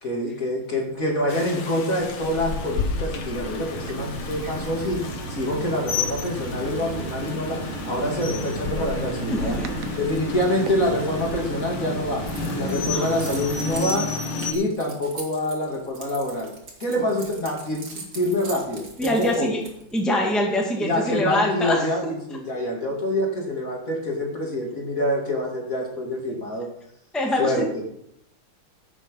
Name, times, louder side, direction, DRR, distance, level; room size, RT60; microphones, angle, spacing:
voice 1, 0.0-5.0 5.3-9.6 9.9-12.2 12.6-14.1 14.5-16.5 16.8-19.6 20.8-26.7 27.4-27.8, left 1 dB, 40° left, 0 dB, 2.9 m, -26 dB
Rain, 1.3-14.5, left 3 dB, 75° left, 2.3 m, -31 dB
sound 1, 3.7-13.8, right 4 dB, 50° right, 1.1 m, -36 dB
voice 2, 9.3-9.7 12.9-13.1 19.0-19.6 19.9-21.9 27.1-27.6, left 1 dB, ahead, -1 dB, 2.0 m, -24 dB
Keys jangling, 12.3-20.0, right 4 dB, 70° right, 3.6 m, -41 dB
16.5 x 7.4 x 5.5 m, 0.76 s
omnidirectional pair, 2.4 m